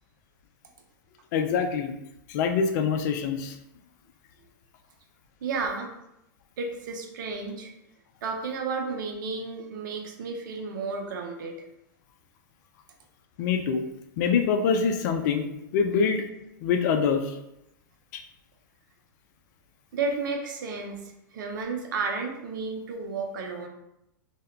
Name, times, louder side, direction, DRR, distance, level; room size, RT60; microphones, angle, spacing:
voice 1, 1.3-1.9 2.3-3.6 13.4-13.8 14.2-15.5 15.7-16.3 16.6-17.4 18.1-18.2, left 6 dB, 55° left, 6 dB, 0.4 m, -25 dB
voice 2, 5.4-5.9 6.6-7.7 8.2-11.6 19.9-21.0 21.3-23.7, right 4 dB, 65° right, 3 dB, 0.5 m, -32 dB
2.2 x 2.1 x 3.6 m, 0.84 s
hypercardioid pair, 110°, 11 cm